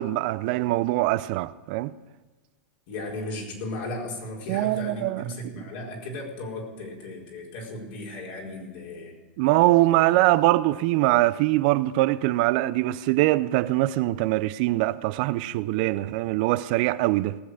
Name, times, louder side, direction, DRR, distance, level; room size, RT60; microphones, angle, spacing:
voice 1, 0.0-1.9 4.5-5.2 9.4-17.4, right 17 dB, 55° right, 0.5 m, -23 dB
voice 2, 2.9-9.1, left 1 dB, 60° left, 4.6 m, -36 dB
18.5 x 7.8 x 6.4 m
hypercardioid pair, 110°, 6 cm